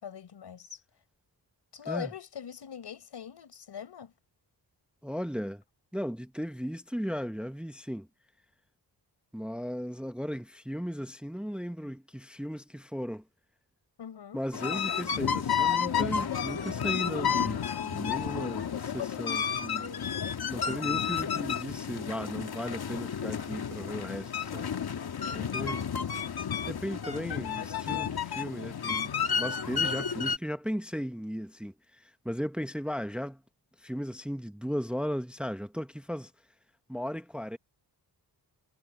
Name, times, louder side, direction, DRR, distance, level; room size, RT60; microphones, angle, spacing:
voice 1, 0.0-0.8 1.7-4.1 14.0-14.4 20.7-21.2 25.3-25.8, left 8 dB, 85° left, 5.0 m, -42 dB
voice 2, 5.0-5.6 5.9-8.1 9.3-13.2 14.3-19.9 20.5-24.7 25.3-25.8 26.7-33.4 33.8-36.3 36.9-37.6, equal, ahead, 0.8 m, -36 dB
sound 1, 14.5-30.4, left 7 dB, 65° left, 2.3 m, -31 dB
wide cardioid pair, 140°, 40 cm